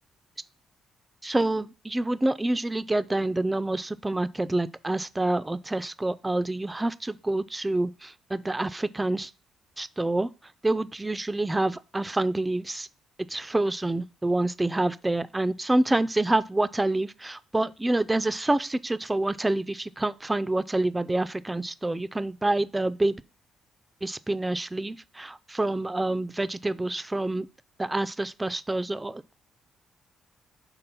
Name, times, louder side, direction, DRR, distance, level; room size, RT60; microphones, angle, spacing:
voice 1, 1.2-9.3 9.8-10.3 10.6-12.9 13.3-23.2 24.0-27.5 27.8-29.3, right 2 dB, 15° right, 0.4 m, -27 dB
5.3 x 3.9 x 5.7 m
cardioid pair, 90°, 0 cm